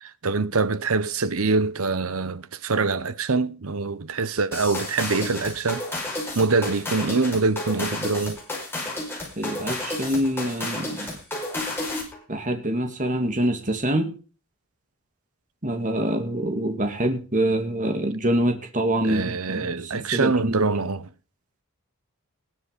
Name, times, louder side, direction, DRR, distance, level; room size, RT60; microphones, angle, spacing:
voice 1, 0.0-5.8 6.3-8.4 11.0-11.1 19.0-21.1, right 4 dB, 70° right, 0.9 m, -24 dB
sound 1, 4.5-12.2, left 2 dB, 10° left, 5.3 m, -31 dB
voice 2, 9.4-11.2 12.3-14.1 15.6-20.7, right 1 dB, 35° right, 2.3 m, -25 dB
19.5 x 7.7 x 5.2 m
head